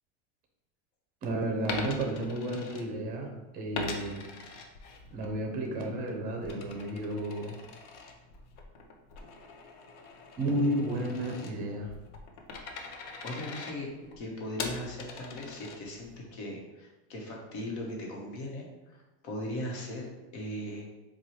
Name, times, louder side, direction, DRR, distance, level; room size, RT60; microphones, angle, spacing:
voice 1, 1.2-4.3 5.1-7.6 10.4-11.9 15.3-15.4, right 1 dB, 25° right, 1 dB, 0.6 m, -32 dB
Coin (dropping), 1.6-3.3 3.7-5.3 5.7-16.2, left 4 dB, 85° left, 0.6 m, -42 dB
voice 2, 12.8-13.9 14.2-20.9, left 1 dB, 65° left, -1 dB, 1.1 m, -39 dB
4.3 x 2.3 x 3.0 m, 1.1 s
supercardioid pair, 155°, 35 cm